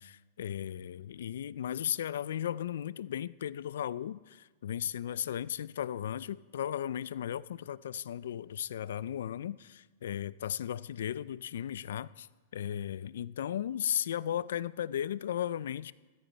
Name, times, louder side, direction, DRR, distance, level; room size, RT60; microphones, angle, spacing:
voice 1, 0.0-12.3 12.5-15.9, left 10 dB, 80° left, 19 dB, 0.4 m, -36 dB
14.0 x 13.5 x 4.1 m, 1.2 s
supercardioid pair, 165°, 0 cm